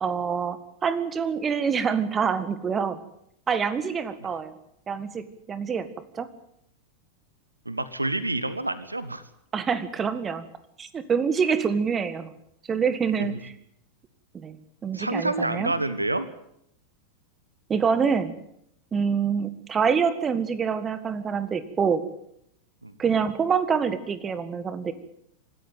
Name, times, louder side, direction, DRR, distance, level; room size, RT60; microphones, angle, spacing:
voice 1, 0.0-3.0 3.5-4.5 4.9-5.9 6.1-6.3 9.5-10.5 10.8-12.3 12.7-13.5 14.3-14.6 14.8-15.7 17.7-18.3 18.9-22.1 23.0-24.9, right 6 dB, 20° right, 14 dB, 1.7 m, -26 dB
voice 2, 7.6-9.2 13.2-13.4 14.9-16.3 22.8-22.9, right 2 dB, 85° right, 15 dB, 1.3 m, -28 dB
25.5 x 13.5 x 9.1 m, 0.73 s
figure-of-eight pair, 90°, 0 cm